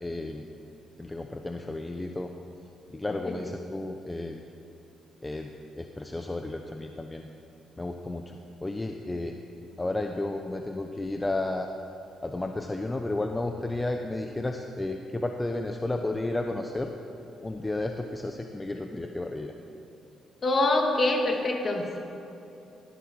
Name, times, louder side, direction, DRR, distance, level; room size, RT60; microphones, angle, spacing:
voice 1, 0.0-0.5 1.0-2.3 2.9-4.4 5.2-5.5 5.8-7.3 7.8-9.3 9.8-11.7 12.2-16.9 17.4-19.5, left 2 dB, 15° left, 4 dB, 0.9 m, -32 dB
voice 2, 20.4-22.0, left 2 dB, 40° left, 1 dB, 2.5 m, -25 dB
19.0 x 14.5 x 4.8 m, 2.8 s
cardioid pair, 90°, 0 cm